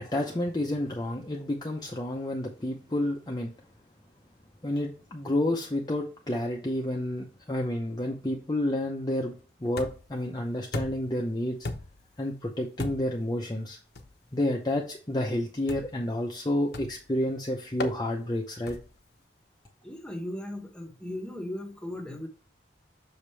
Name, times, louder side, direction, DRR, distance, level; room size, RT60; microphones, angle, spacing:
voice 1, 0.0-3.5 4.6-9.3 9.6-11.7 12.2-13.8 14.3-18.8, left 1 dB, 20° left, 0 dB, 0.7 m, -30 dB
sound 1, 9.8-10.2 10.7-11.2 11.6-12.1 12.8-13.2 13.9-14.2 15.7-16.0 16.7-17.1 17.8-18.0 18.7-19.0, left 2 dB, 60° left, 0.8 m, -36 dB
voice 2, 19.8-22.3, left 1 dB, 5° left, 2 dB, 1.0 m, -37 dB
6.4 x 5.0 x 3.3 m, 0.37 s
head